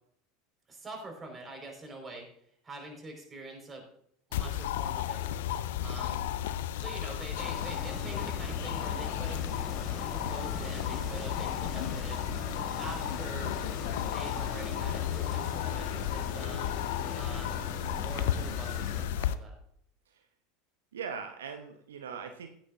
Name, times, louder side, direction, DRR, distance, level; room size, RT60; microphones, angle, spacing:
voice 1, 0.7-2.3 2.6-3.8 4.3-5.2 5.8-6.2 6.7-9.4 10.1-12.2 12.8-13.6 14.0-16.8 17.2-17.7 18.0-19.5, right 2 dB, 25° right, 1 dB, 4.9 m, -45 dB
sound 1, 4.3-19.3, left 11 dB, 65° left, 0.6 m, -33 dB
sound 2, 7.3-19.0, left 3 dB, 35° left, 2.7 m, -41 dB
voice 2, 20.9-22.5, right 6 dB, 75° right, 6 dB, 0.9 m, -40 dB
15.5 x 10.5 x 2.6 m, 0.68 s
figure-of-eight pair, 75°, 0 cm